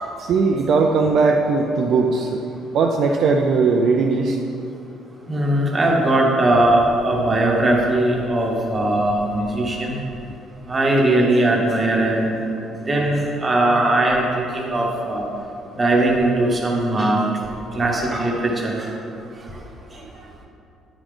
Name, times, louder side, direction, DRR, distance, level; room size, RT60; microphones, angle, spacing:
voice 1, 0.2-2.4 2.7-4.4 20.0-20.3, right 4 dB, 50° right, 2 dB, 0.4 m, -19 dB
voice 2, 5.3-10.0 10.7-12.5 12.9-15.2 15.8-17.2 17.7-18.9, right 1 dB, 20° right, -1 dB, 1.0 m, -19 dB
9.9 x 4.9 x 3.8 m, 2.7 s
cardioid pair, 170°, 0 cm